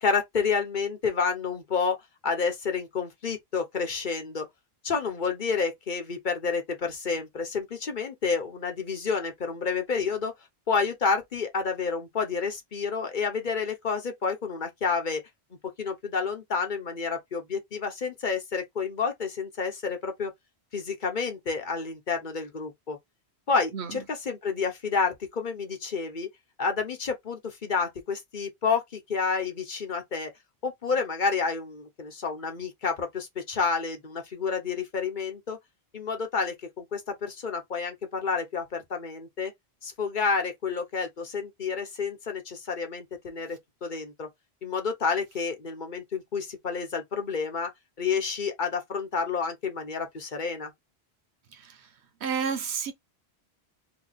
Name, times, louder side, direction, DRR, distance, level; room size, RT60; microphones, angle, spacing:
voice 1, 0.0-2.0 2.2-4.5 4.8-10.3 10.7-15.2 15.8-20.3 20.7-23.0 23.5-26.3 26.6-30.3 30.6-35.6 35.9-39.5 39.8-44.3 44.6-47.7 48.0-50.7, left 5 dB, 50° left, 1.0 m, -29 dB
voice 2, 23.7-24.0 51.5-51.9 52.2-52.9, right 6 dB, 90° right, 1.1 m, -31 dB
3.0 x 2.4 x 3.9 m
omnidirectional pair, 1.1 m